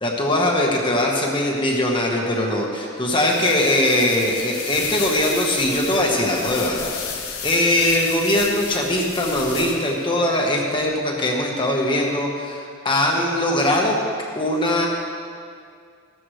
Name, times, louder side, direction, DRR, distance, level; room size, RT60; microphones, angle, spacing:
voice 1, 0.0-14.0 14.3-14.9, left 1 dB, 25° left, -1 dB, 1.4 m, -21 dB
sound 1, 3.2-10.0, left 6 dB, 90° left, 1.5 m, -33 dB
15.0 x 14.0 x 3.3 m, 2.2 s
head